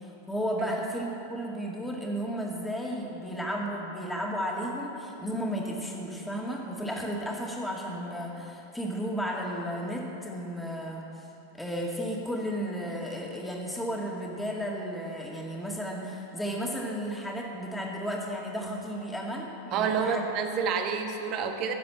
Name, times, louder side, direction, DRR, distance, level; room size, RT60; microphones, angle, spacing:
voice 1, 0.0-11.2 11.5-20.2, equal, 5° left, -2 dB, 2.3 m, -33 dB
voice 2, 19.7-21.7, right 6 dB, 40° right, 5 dB, 1.4 m, -29 dB
16.5 x 7.5 x 7.6 m, 2.9 s
figure-of-eight pair, 90°, 0 cm